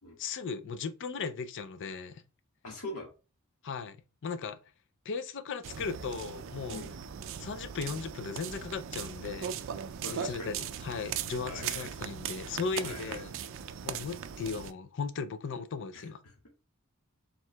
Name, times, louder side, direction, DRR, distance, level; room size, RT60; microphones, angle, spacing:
voice 1, 0.2-2.2 3.6-4.0 4.2-4.6 5.1-6.8 7.4-9.6 10.1-10.6 10.8-13.3 13.8-16.2, left 5 dB, 55° left, 0.5 m, -37 dB
voice 2, 2.6-3.1 6.7-6.9 10.0-10.5 11.4-11.9 12.8-13.3 15.9-16.0, left 1 dB, 80° left, 1.6 m, -42 dB
sound 1, 5.6-14.7, right 8 dB, 60° right, 0.4 m, -39 dB
4.5 x 3.6 x 2.2 m
head